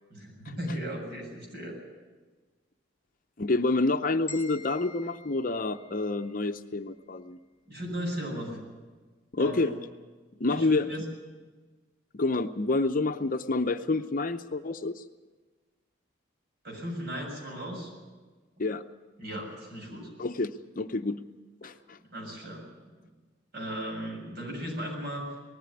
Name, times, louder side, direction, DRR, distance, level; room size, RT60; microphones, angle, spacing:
voice 1, 0.1-1.8 7.7-8.6 9.4-9.7 10.5-11.0 16.6-17.9 19.2-20.1 21.6-21.7 22.1-22.6 23.0-23.1 23.5-25.2, equal, 55° right, -1 dB, 7.1 m, -36 dB
voice 2, 3.4-7.4 9.3-9.7 10.4-10.9 12.1-15.0 18.6-18.8 20.2-21.2 21.6-22.0, left 2 dB, 45° left, 8 dB, 0.7 m, -28 dB
sound 1, 4.3-6.5, left 5 dB, 25° left, 2.0 m, -47 dB
19.5 x 14.0 x 9.9 m, 1.3 s
head